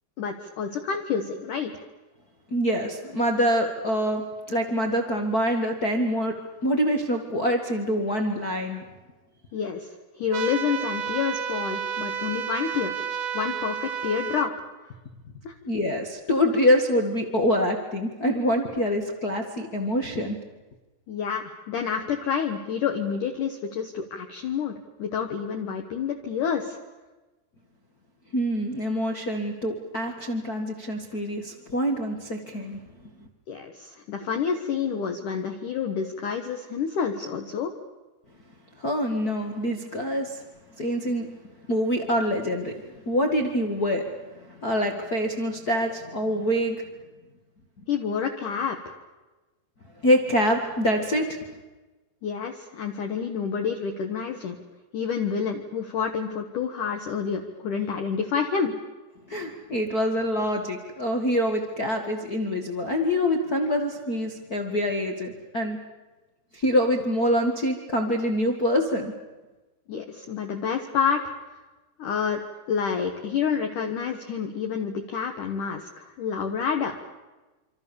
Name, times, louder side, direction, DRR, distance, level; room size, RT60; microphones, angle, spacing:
voice 1, 0.2-1.8 9.5-9.9 10.2-12.9 13.3-14.5 15.4-15.5 21.1-26.8 33.5-37.7 47.9-49.0 52.2-54.6 54.9-58.7 69.9-71.2 72.0-72.4 72.7-77.0, left 6 dB, 60° left, 4 dB, 2.5 m, -28 dB
voice 2, 2.5-6.3 6.6-8.8 15.6-20.4 28.3-32.8 38.8-40.4 40.8-41.3 41.7-42.8 43.0-44.1 44.4-46.8 50.0-51.4 59.3-65.8 66.5-69.1, equal, 85° left, 2 dB, 0.8 m, -25 dB
sound 1, 10.3-14.5, right 8 dB, 70° right, 2.8 m, -31 dB
27.0 x 26.5 x 7.1 m, 1.2 s
omnidirectional pair, 5.1 m